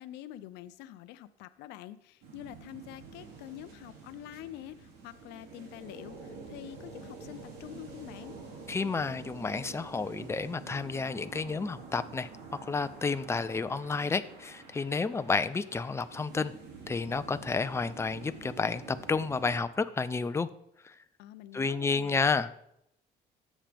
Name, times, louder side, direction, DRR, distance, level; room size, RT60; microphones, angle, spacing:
voice 1, 0.0-8.3 21.2-22.3, left 13 dB, 90° left, 13 dB, 0.5 m, -46 dB
sound 1, 2.2-19.6, right 4 dB, 85° right, 2.7 m, -48 dB
voice 2, 8.7-12.3 12.7-16.5 16.9-20.5 20.8-20.9 21.5-22.6, left 4 dB, 15° left, 11 dB, 0.5 m, -31 dB
18.0 x 7.4 x 3.5 m, 0.77 s
cardioid pair, 110°, 17 cm